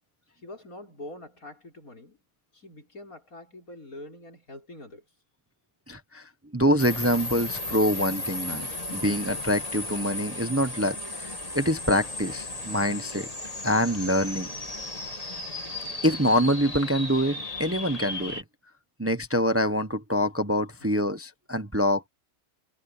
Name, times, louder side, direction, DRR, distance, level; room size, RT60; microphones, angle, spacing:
voice 1, 0.4-2.2 2.5-5.1 20.8-21.1, left 1 dB, 80° left, 6.3 m, -44 dB
voice 2, 5.9-13.3 13.6-14.5 16.0-18.4 19.0-22.1, equal, 10° right, 1.0 m, -25 dB
sound 1, 6.8-18.4, left 2 dB, 25° left, 2.7 m, -35 dB
omnidirectional pair, 1.5 m